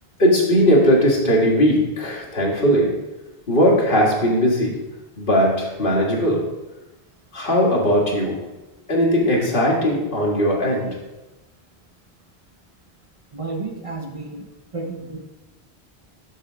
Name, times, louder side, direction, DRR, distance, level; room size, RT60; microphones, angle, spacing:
voice 1, 0.2-3.0 3.5-4.8 5.2-6.5 7.3-8.4 8.9-11.0, equal, 60° left, -3 dB, 1.8 m, -18 dB
voice 2, 13.3-14.5 14.7-15.3, right 3 dB, 35° right, 3 dB, 0.9 m, -31 dB
6.6 x 3.7 x 6.0 m, 1.0 s
omnidirectional pair, 1.0 m